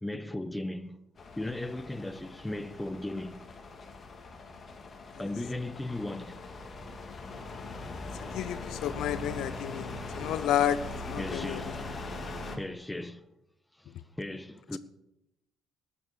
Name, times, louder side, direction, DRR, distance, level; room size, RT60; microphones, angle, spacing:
voice 1, 0.0-1.0 1.4-3.4 5.2-6.5 11.2-13.3 13.8-14.8, left 1 dB, 10° left, 1.0 m, -37 dB
sound 1, 1.2-12.6, left 3 dB, 35° left, 2.5 m, -41 dB
voice 2, 8.3-9.9 10.2-10.8 11.1-11.6, left 10 dB, 65° left, 0.6 m, -30 dB
13.0 x 10.0 x 6.6 m
hypercardioid pair, 55°, 0 cm